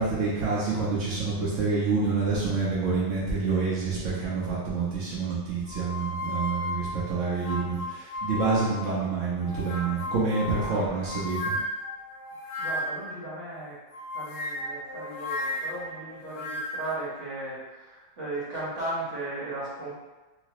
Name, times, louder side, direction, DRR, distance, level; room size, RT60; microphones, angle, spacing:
voice 1, 0.0-11.5, right 4 dB, 75° right, -8 dB, 0.6 m, -27 dB
sound 1, 5.7-9.0 9.4-13.1 13.9-17.0, left 1 dB, 65° left, 1.0 m, -34 dB
voice 2, 10.6-11.1 12.4-13.8 14.1-19.9, right 2 dB, 40° right, -8 dB, 1.3 m, -36 dB
3.0 x 3.0 x 3.0 m, 1.2 s
omnidirectional pair, 2.4 m